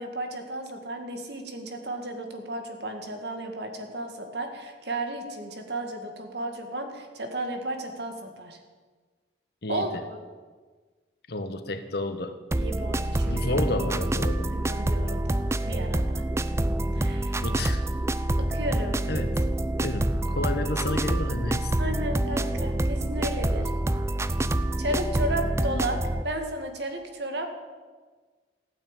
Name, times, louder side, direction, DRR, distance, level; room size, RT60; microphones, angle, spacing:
voice 1, 0.0-8.6 9.7-9.9 12.6-13.3 14.5-16.5 17.0-17.4 18.4-19.0 21.8-23.7 24.8-27.5, right 1 dB, 65° right, 5 dB, 2.1 m, -34 dB
voice 2, 9.6-10.0 11.3-12.4 13.3-14.5 16.5-16.6 17.4-17.8 19.1-19.4 19.8-21.9, left 2 dB, 60° left, 9 dB, 1.2 m, -31 dB
sound 1, 12.5-26.2, right 1 dB, 15° right, 0.4 m, -27 dB
15.0 x 9.2 x 9.1 m, 1.4 s
head